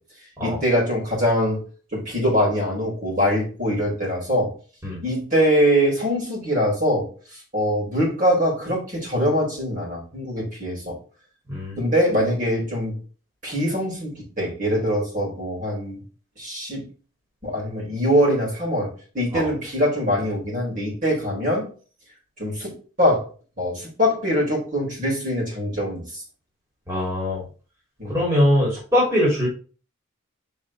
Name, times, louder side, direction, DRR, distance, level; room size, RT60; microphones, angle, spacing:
voice 1, 0.4-1.6 1.9-4.5 5.0-7.1 7.5-10.9 11.8-13.0 13.4-16.0 16.4-16.8 17.4-21.7 22.4-22.7 23.0-23.2 23.6-26.0 28.0-28.2, equal, 40° right, -4 dB, 4.3 m, -23 dB
voice 2, 11.5-11.8 19.3-19.5 26.9-27.4 28.0-29.5, left 1 dB, 15° right, -7 dB, 3.4 m, -21 dB
6.7 x 5.5 x 3.7 m, 0.37 s
head